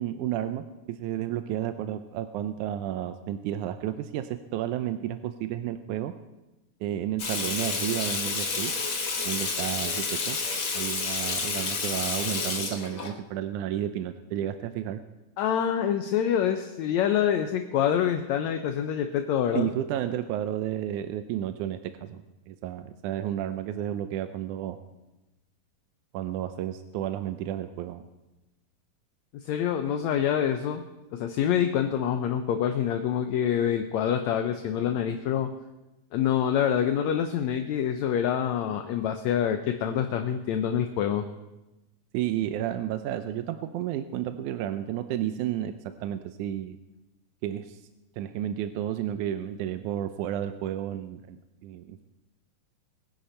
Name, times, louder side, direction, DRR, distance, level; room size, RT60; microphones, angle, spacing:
voice 1, 0.0-6.1 6.8-8.7 9.2-10.4 10.7-15.0 19.5-24.8 26.1-28.0 42.1-46.8 47.4-47.8 48.2-52.0, right 11 dB, 80° right, 9 dB, 1.9 m, -32 dB
Water tap faucet / Sink (filling or washing), 7.2-13.1, left 4 dB, 45° left, 2.0 m, -30 dB
voice 2, 15.4-19.7 29.5-30.8 31.1-35.5 36.1-41.3, left 9 dB, 75° left, 6 dB, 1.7 m, -26 dB
22.0 x 10.5 x 4.4 m, 1.0 s
omnidirectional pair, 3.9 m